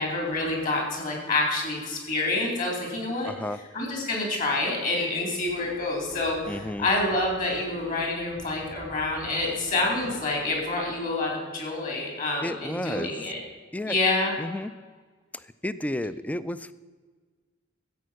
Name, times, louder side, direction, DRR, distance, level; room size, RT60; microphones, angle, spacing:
voice 1, 0.0-3.3 3.7-13.4 13.9-14.3, left 2 dB, 45° left, 0 dB, 3.9 m, -27 dB
voice 2, 3.3-3.6 6.5-6.9 12.4-13.1 13.7-14.0 14.4-14.7 15.6-16.7, left 1 dB, 5° left, 14 dB, 0.4 m, -31 dB
sound 1, 5.4-11.0, equal, 75° left, 5.1 m, -48 dB
14.0 x 8.5 x 6.4 m, 1.4 s
head